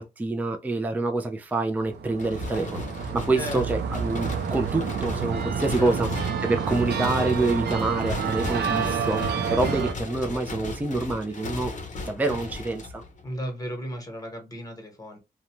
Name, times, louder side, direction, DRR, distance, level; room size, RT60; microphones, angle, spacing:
voice 1, 0.0-2.9 3.1-11.7 12.1-13.0, right 2 dB, 10° right, 0.4 m, -27 dB
sound 1, 1.8-9.9, right 6 dB, 75° right, 0.5 m, -29 dB
sound 2, 2.2-13.4, left 3 dB, 45° left, 0.6 m, -37 dB
voice 2, 3.4-3.7 5.8-6.0 6.7-6.8 13.2-15.2, equal, 20° left, 1.1 m, -34 dB
2.5 x 2.1 x 2.9 m
cardioid pair, 95°, 17 cm